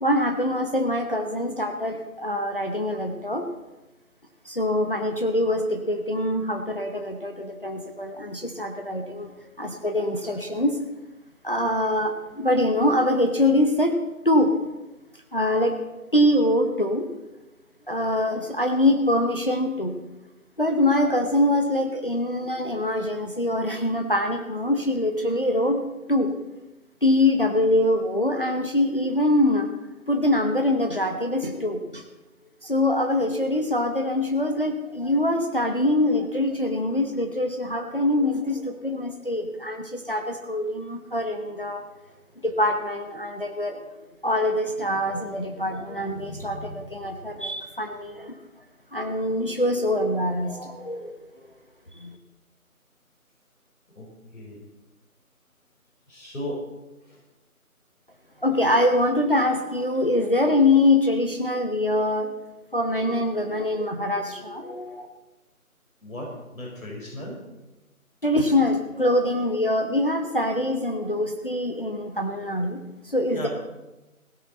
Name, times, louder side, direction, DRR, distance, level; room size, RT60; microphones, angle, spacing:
voice 1, 0.0-3.5 4.5-9.3 9.6-10.8 11.4-13.9 14.2-14.5 15.3-15.8 16.1-17.1 17.9-19.9 20.6-25.8 26.1-26.3 27.0-29.7 30.1-32.0 32.6-41.8 42.4-43.8 44.2-48.3 48.9-51.2 51.9-52.1 58.4-62.3 62.7-65.1 68.2-73.5, left 1 dB, 40° left, 4 dB, 0.9 m, -24 dB
voice 2, 56.1-56.6 57.0-57.2 66.0-67.4 73.2-73.5, left 1 dB, 65° left, -2 dB, 5.1 m, -36 dB
16.5 x 11.0 x 4.2 m, 1.0 s
figure-of-eight pair, 170°, 44 cm